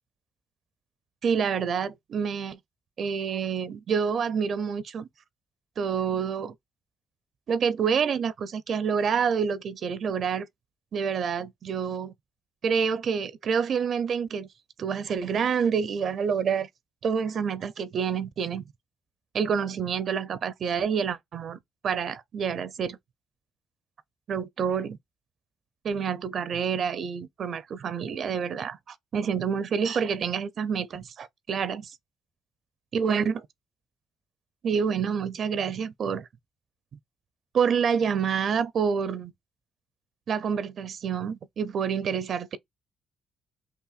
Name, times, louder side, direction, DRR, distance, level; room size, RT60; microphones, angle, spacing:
voice 1, 1.2-2.6 3.0-5.1 5.8-6.5 7.5-10.5 10.9-12.1 12.6-14.5 14.8-16.7 17.0-18.6 19.3-21.6 21.8-23.0 24.3-25.0 25.8-32.0 32.9-33.4 34.6-36.3 37.5-39.3 40.3-42.6, right 6 dB, 60° right, 0.4 m, -27 dB
5.6 x 2.1 x 2.4 m
cardioid pair, 90°, 0 cm